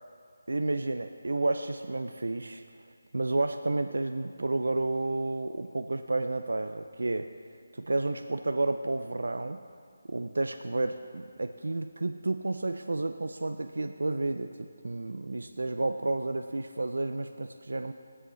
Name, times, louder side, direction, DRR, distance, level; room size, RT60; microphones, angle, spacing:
voice 1, 0.5-2.6 3.1-7.3 7.7-9.6 10.1-17.9, right 2 dB, 85° right, 7 dB, 0.4 m, -31 dB
16.5 x 7.7 x 3.2 m, 2.1 s
figure-of-eight pair, 175°, 0 cm